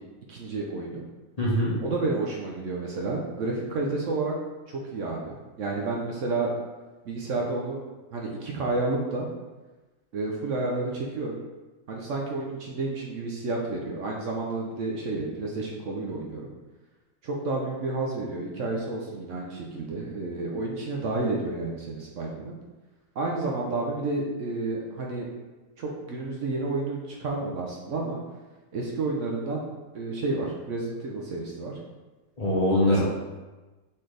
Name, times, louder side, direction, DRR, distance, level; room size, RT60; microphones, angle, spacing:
voice 1, 0.3-1.0 1.8-4.3 4.7-6.5 7.0-7.8 8.1-9.3 10.1-11.4 11.9-16.5 17.2-22.5 23.2-25.3 25.8-28.2 28.7-29.6 29.9-31.7 32.8-33.0, right 3 dB, 65° right, -2 dB, 0.9 m, -30 dB
voice 2, 1.4-1.7 32.4-33.0, left 1 dB, 30° left, -7 dB, 0.9 m, -22 dB
4.3 x 3.8 x 3.2 m, 1.2 s
omnidirectional pair, 1.6 m